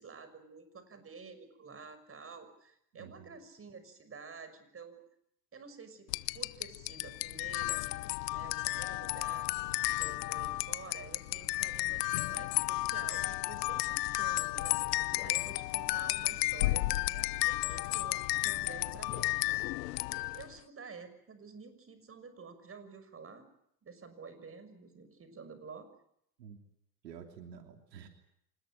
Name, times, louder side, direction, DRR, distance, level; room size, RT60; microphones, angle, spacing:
voice 1, 0.0-5.0 5.5-6.1 6.3-7.9 8.3-9.5 9.9-19.6 20.3-23.5 23.8-25.9, right 5 dB, 25° right, 10 dB, 6.2 m, -50 dB
voice 2, 2.9-3.4 15.1-15.4 26.4-26.6 27.0-28.1, right 7 dB, 85° right, 5 dB, 3.2 m, -50 dB
sound 1, 6.1-20.5, left 19 dB, 75° left, 1.0 m, -33 dB
25.5 x 20.5 x 9.1 m, 0.75 s
hypercardioid pair, 85°, 48 cm